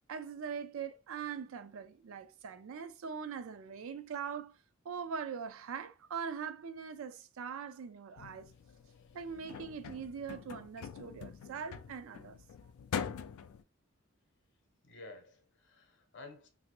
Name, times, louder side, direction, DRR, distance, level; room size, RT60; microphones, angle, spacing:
voice 1, 0.0-4.6 4.8-8.5 9.1-12.4, right 6 dB, 65° right, 0.4 m, -42 dB
sound 1, 8.2-13.6, left 7 dB, 90° left, 0.3 m, -44 dB
voice 2, 14.8-16.5, left 3 dB, 60° left, 0.8 m, -52 dB
2.9 x 2.6 x 3.0 m
head